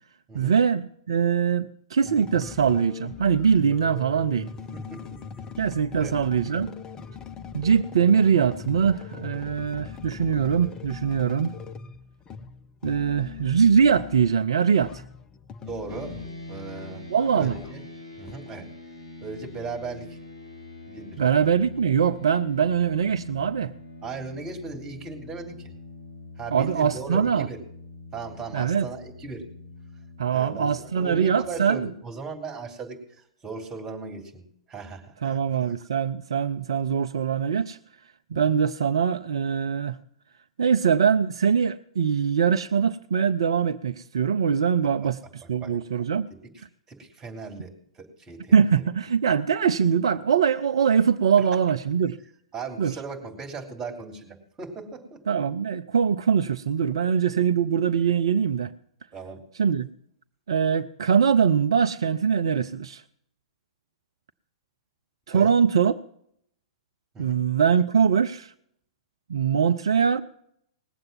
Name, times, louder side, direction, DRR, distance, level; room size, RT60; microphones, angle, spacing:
voice 1, 0.3-4.5 5.6-6.7 7.5-11.6 12.8-15.0 17.1-17.6 21.2-23.7 26.5-27.5 28.5-28.9 30.2-31.9 35.2-37.8 38.3-40.0 40.6-46.3 48.5-52.2 52.8-52.9 55.3-58.7 59.6-59.9 60.5-63.0 65.3-65.9 67.2-68.5 69.3-70.2, right 7 dB, 65° right, 0.5 m, -22 dB
sound 1, 2.0-14.3 14.8-16.5 16.8-17.9 18.3-18.4, left 6 dB, 20° left, 0.7 m, -40 dB
voice 2, 4.7-5.2 5.9-6.1 15.6-16.2 16.5-17.1 17.4-17.8 18.2-18.7 19.2-20.2 20.9-21.3 24.0-25.7 26.4-27.6 28.1-29.5 30.3-34.4 34.7-35.4 38.3-38.4 45.6-45.7 46.3-48.5 52.5-55.2 57.0-57.1 59.1-59.4 65.3-65.5 67.1-67.4, right 4 dB, 20° right, 3.0 m, -38 dB
sound 2, 15.9-31.7, left 2 dB, 70° left, 6.1 m, -43 dB
19.5 x 7.7 x 7.3 m
figure-of-eight pair, 105°, 3 cm